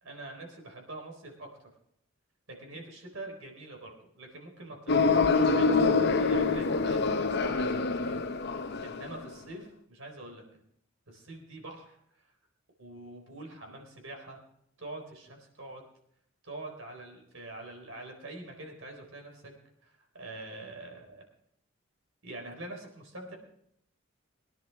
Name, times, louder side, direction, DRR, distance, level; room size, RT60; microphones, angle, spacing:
voice 1, 0.0-1.7 2.6-10.4 11.1-12.0 12.2-12.3 12.8-14.4 14.8-15.8 16.4-19.5 19.8-21.2 22.2-23.3, right 2 dB, 75° right, 2 dB, 4.1 m, -45 dB
sound 1, 4.9-9.3, left 4 dB, 55° left, 0.8 m, -26 dB
22.0 x 10.5 x 3.5 m, 0.72 s
head